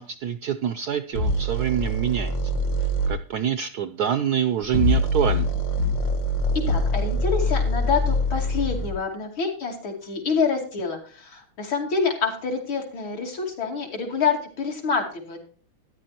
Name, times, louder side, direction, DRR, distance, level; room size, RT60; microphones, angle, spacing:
voice 1, 0.0-2.5 3.1-5.5, right 9 dB, 70° right, 11 dB, 0.9 m, -26 dB
sound 1, 1.1-3.2 4.6-9.0, left 1 dB, 55° left, 2.2 m, -24 dB
voice 2, 6.5-15.4, left 5 dB, 70° left, 2 dB, 3.3 m, -27 dB
14.0 x 10.0 x 2.8 m, 0.40 s
omnidirectional pair, 2.3 m